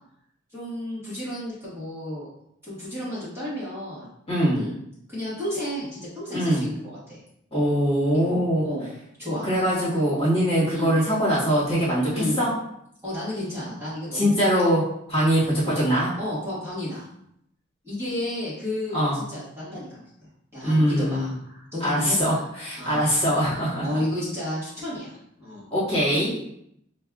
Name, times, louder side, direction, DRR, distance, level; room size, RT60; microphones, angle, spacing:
voice 1, 0.5-2.3 2.6-4.1 4.5-4.8 5.1-7.2 8.2-8.9 9.2-9.5 10.7-10.9 12.1-12.4 13.0-14.3 15.5-15.7 16.2-17.1 17.8-20.0 20.5-22.4 22.8-23.1 23.8-25.7, left 1 dB, 10° right, -11 dB, 1.4 m, -32 dB
voice 2, 4.3-4.6 6.3-6.6 7.5-8.6 9.5-12.5 14.1-14.8 15.1-16.1 18.9-19.2 20.6-21.3 21.8-23.9 25.7-26.3, equal, 30° left, -9 dB, 1.4 m, -22 dB
5.4 x 2.3 x 2.3 m, 0.75 s
head